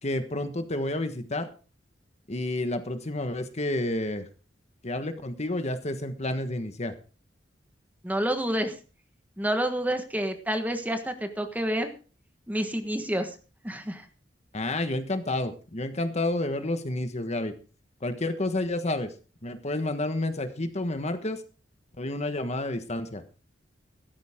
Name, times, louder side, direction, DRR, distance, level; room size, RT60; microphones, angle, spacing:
voice 1, 0.0-1.5 2.3-4.3 4.8-6.9 14.5-17.5 18.0-19.1 19.4-21.4 22.0-23.2, left 1 dB, 35° left, 9 dB, 1.4 m, -30 dB
voice 2, 8.0-8.7 9.4-11.9 12.5-13.3 13.6-14.1, right 1 dB, 10° right, 7 dB, 1.4 m, -28 dB
15.5 x 13.5 x 3.7 m, 0.36 s
head